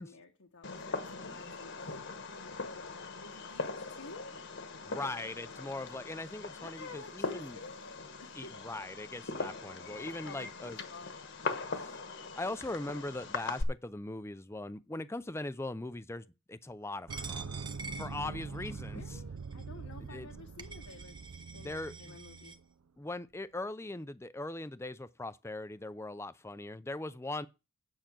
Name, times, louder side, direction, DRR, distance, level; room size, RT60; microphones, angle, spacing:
voice 1, 0.0-4.3 4.9-5.1 6.6-8.5 10.0-11.1 18.9-21.2 21.5-22.6, left 3 dB, 80° left, 1.3 m, -51 dB
Fireworks, 0.6-13.6, left 3 dB, 55° left, 1.2 m, -41 dB
voice 2, 4.8-7.6 8.4-10.8 11.7-12.0 12.4-17.7 17.9-19.2 20.1-20.3 21.5-22.2 23.0-27.5, left 2 dB, 10° left, 0.5 m, -40 dB
Coin (dropping), 17.1-18.9 19.5-19.6 20.3-20.4 20.6-22.6, right 4 dB, 20° right, 0.8 m, -46 dB
sound 1, 17.1-22.6, right 4 dB, 85° right, 0.6 m, -44 dB
9.1 x 5.8 x 7.4 m
head